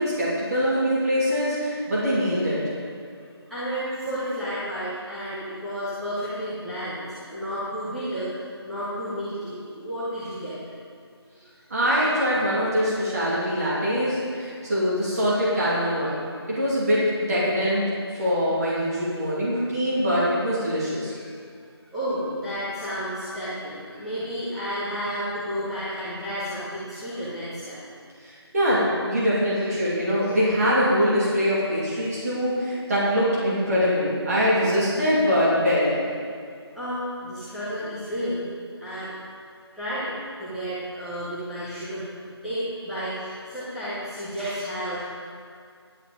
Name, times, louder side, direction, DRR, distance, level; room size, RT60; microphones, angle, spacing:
voice 1, 0.0-2.6 11.7-16.2 16.5-17.9 18.2-21.1 28.2-36.0, equal, 35° right, -8 dB, 2.6 m, -23 dB
voice 2, 3.4-8.3 8.6-10.6 16.4-16.5 18.1-18.2 21.0-21.3 21.9-27.8 36.7-38.4 38.8-39.1 39.7-40.1 40.4-45.1, equal, ahead, -18 dB, 0.8 m, -32 dB
11.5 x 8.4 x 5.1 m, 2.2 s
figure-of-eight pair, 165°, 14 cm